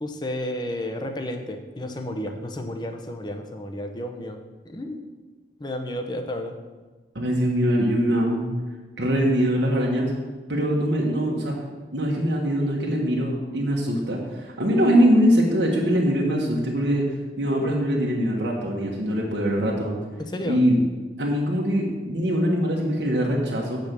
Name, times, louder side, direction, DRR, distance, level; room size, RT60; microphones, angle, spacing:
voice 1, 0.0-4.4 4.7-5.1 5.6-6.5 20.2-20.6, left 1 dB, 25° left, 5 dB, 0.7 m, -32 dB
voice 2, 7.1-8.5 9.0-10.1 10.5-11.5 11.9-17.0 17.4-20.0 20.4-20.8 21.2-23.8, equal, 75° right, -2 dB, 1.4 m, -22 dB
7.6 x 5.2 x 6.8 m, 1.3 s
head